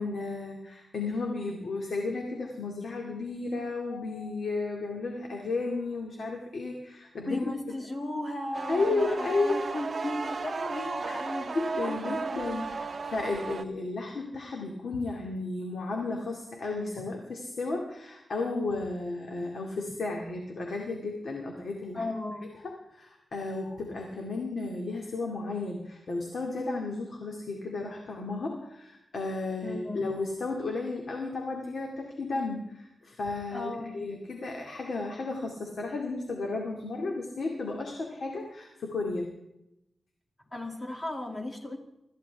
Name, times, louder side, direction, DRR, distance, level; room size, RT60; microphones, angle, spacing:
voice 1, 0.0-7.5 8.7-9.6 11.1-11.2 11.5-22.0 22.6-39.3, left 3 dB, 65° left, 1 dB, 2.2 m, -33 dB
voice 2, 7.3-12.3 21.9-22.5 29.6-30.1 33.5-34.0 40.5-41.8, left 1 dB, 20° left, 2 dB, 2.4 m, -36 dB
sound 1, 8.5-13.6, right 4 dB, 45° right, 0.8 m, -35 dB
25.5 x 14.5 x 3.5 m, 0.85 s
wide cardioid pair, 150°, 0 cm